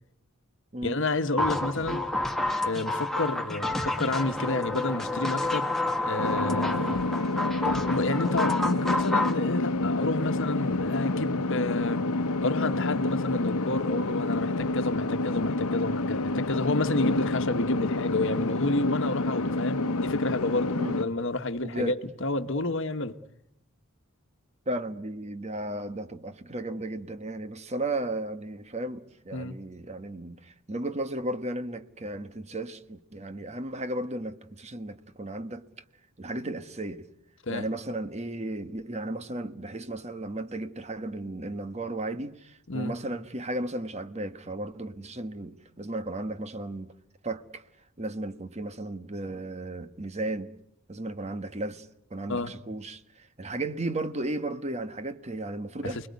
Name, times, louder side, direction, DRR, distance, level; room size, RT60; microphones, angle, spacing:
voice 1, 0.8-2.1 2.6-5.7 6.0-6.7 7.7-12.0 12.4-23.2 29.3-29.6 37.5-37.7 42.7-42.9 52.3-52.5 55.8-56.1, left 2 dB, 60° left, 1.4 m, -30 dB
sound 1, 1.4-9.4, left 2 dB, ahead, 1.7 m, -29 dB
sound 2, 6.2-21.1, left 2 dB, 85° left, 1.0 m, -28 dB
voice 2, 21.6-22.0 24.7-35.6 36.2-37.1 37.5-46.9 47.2-47.6 48.0-50.5 50.9-56.1, right 1 dB, 30° right, 1.2 m, -35 dB
29.5 x 21.0 x 9.5 m
head